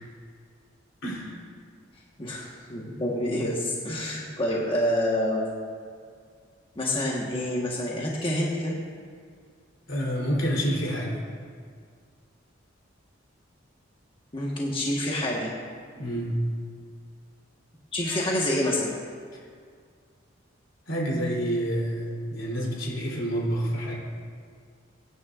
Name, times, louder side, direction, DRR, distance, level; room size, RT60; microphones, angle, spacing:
voice 1, 1.0-1.4 9.9-11.2 15.9-16.4 20.9-23.9, equal, 80° left, -4 dB, 3.3 m, -28 dB
voice 2, 2.2-5.4 6.7-8.8 14.3-15.5 17.9-18.9, left 1 dB, 25° left, -3 dB, 1.3 m, -27 dB
22.0 x 9.5 x 2.5 m, 2.1 s
head